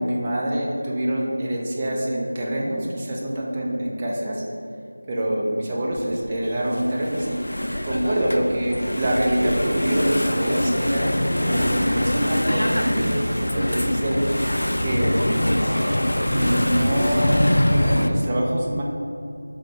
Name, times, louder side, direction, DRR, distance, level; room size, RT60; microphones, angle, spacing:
voice 1, 0.0-4.4 5.1-7.4 7.8-14.2 14.8-15.4 16.3-18.8, right 1 dB, 15° right, -4 dB, 0.5 m, -25 dB
Engine / Mechanisms, 5.9-18.1, left 1 dB, 75° left, 0.3 m, -23 dB
5.8 x 2.0 x 4.5 m, 2.5 s
figure-of-eight pair, 170°, 0 cm